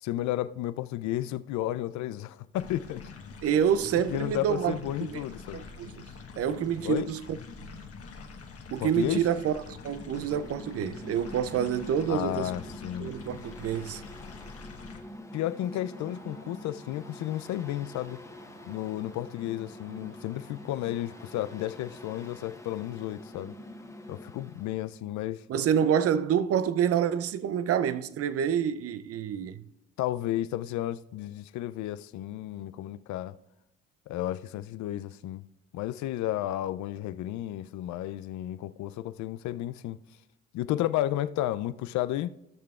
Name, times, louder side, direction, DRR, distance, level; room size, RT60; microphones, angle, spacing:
voice 1, 0.0-3.0 4.1-5.6 6.8-7.1 8.8-9.2 12.1-13.1 15.3-18.2 18.6-23.5 24.1-25.4 30.0-33.4 34.1-35.4 35.7-40.0 40.5-42.3, left 13 dB, 65° left, 0.5 m, -32 dB
sound 1, 2.6-15.0, left 5 dB, 50° left, 1.3 m, -45 dB
voice 2, 3.4-5.2 5.5-6.0 6.4-7.4 8.7-12.5 13.0-14.0 25.5-29.6, right 8 dB, 50° right, 0.5 m, -27 dB
Mechanical fan, 10.0-24.9, left 1 dB, 10° left, 1.2 m, -46 dB
sound 2, 15.9-22.3, right 1 dB, 75° right, 3.6 m, -55 dB
16.0 x 6.6 x 2.4 m
hypercardioid pair, 60°, 31 cm